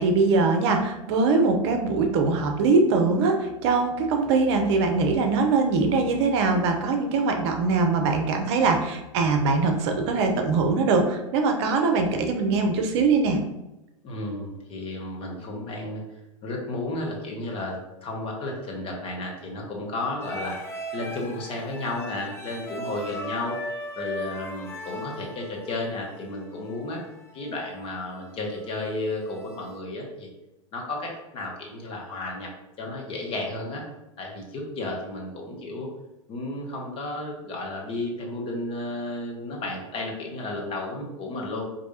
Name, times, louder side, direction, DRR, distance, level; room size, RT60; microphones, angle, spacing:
voice 1, 0.0-13.4, right 4 dB, 55° right, 4 dB, 0.6 m, -22 dB
voice 2, 14.0-16.0 16.4-20.6 20.9-23.6 24.0-27.0 27.3-30.3 30.7-32.5 32.8-33.8 34.2-35.9 36.3-41.6, left 2 dB, 35° left, 0 dB, 1.1 m, -33 dB
sound 1, 20.2-29.8, equal, 15° left, 0.6 m, -39 dB
4.6 x 2.7 x 2.7 m, 0.93 s
hypercardioid pair, 95°, 17 cm